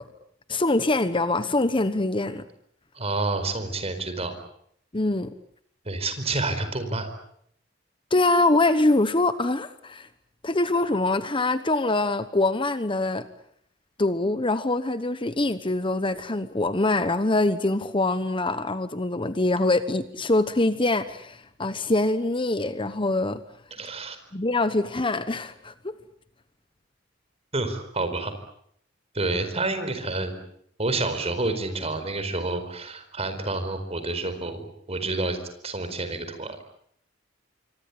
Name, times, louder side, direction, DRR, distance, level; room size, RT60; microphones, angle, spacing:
voice 1, 0.5-2.4 4.9-5.3 8.1-10.1 10.4-13.3 14.0-23.4 24.3-25.9, left 2 dB, 25° left, 12 dB, 1.1 m, -24 dB
voice 2, 2.9-4.4 5.8-7.1 23.8-24.2 27.5-28.3 29.1-30.4 30.8-35.4 35.6-36.6, right 2 dB, 30° right, 9 dB, 4.6 m, -29 dB
26.5 x 24.5 x 8.5 m, 0.68 s
head